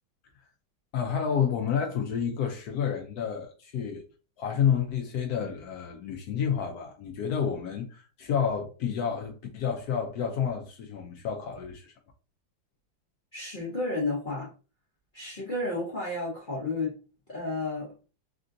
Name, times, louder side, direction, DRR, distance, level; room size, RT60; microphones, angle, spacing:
voice 1, 0.9-4.0 4.4-11.9, left 7 dB, 80° left, 0.8 m, -30 dB
voice 2, 13.3-14.5 15.1-17.0 17.3-17.9, left 2 dB, 65° left, 0.5 m, -32 dB
3.4 x 2.6 x 2.5 m
omnidirectional pair, 2.2 m